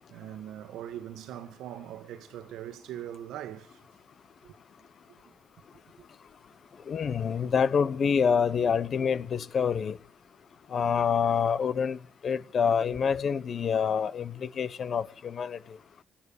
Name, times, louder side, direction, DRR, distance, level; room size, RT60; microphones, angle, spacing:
voice 1, 0.1-3.8 4.4-4.5 5.2-5.3 7.2-7.4 7.7-7.8, right 11 dB, 85° right, 1.4 m, -41 dB
voice 2, 6.9-10.0 10.7-12.0 12.2-15.6, left 6 dB, 50° left, 1.1 m, -27 dB
17.5 x 10.0 x 7.0 m
cardioid pair, 90°, 0 cm